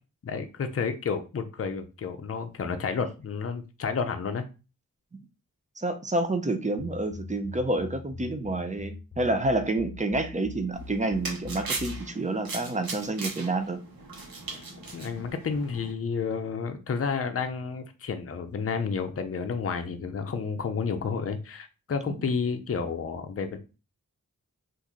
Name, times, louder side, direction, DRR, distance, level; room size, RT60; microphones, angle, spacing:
voice 1, 0.2-4.5 14.5-23.6, left 5 dB, 40° left, 6 dB, 0.6 m, -31 dB
voice 2, 5.8-13.8 22.1-22.2, right 2 dB, 20° right, 7 dB, 0.5 m, -28 dB
sound 1, 6.8-12.1, left 2 dB, 20° left, 1.2 m, -42 dB
sound 2, 10.7-15.9, right 3 dB, 85° right, 1.0 m, -38 dB
2.9 x 2.6 x 3.7 m, 0.31 s
wide cardioid pair, 70°, 35 cm